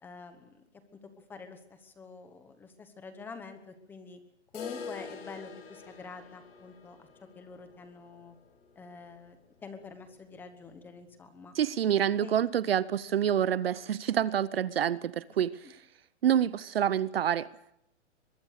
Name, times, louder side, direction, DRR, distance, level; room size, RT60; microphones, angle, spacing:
voice 1, 0.0-0.7 1.0-4.2 4.5-7.1 7.3-8.3 8.8-9.4 9.6-11.6 12.2-12.3, left 4 dB, 5° left, 1.1 m, -47 dB
sound 1, 4.5-10.4 10.6-10.7 11.1-11.2 11.7-11.8 12.7-12.8, left 5 dB, 55° left, 6.8 m, -46 dB
voice 2, 11.5-15.8 16.2-17.5, right 9 dB, 55° right, 0.8 m, -27 dB
23.0 x 22.5 x 6.6 m
hypercardioid pair, 170°, 36 cm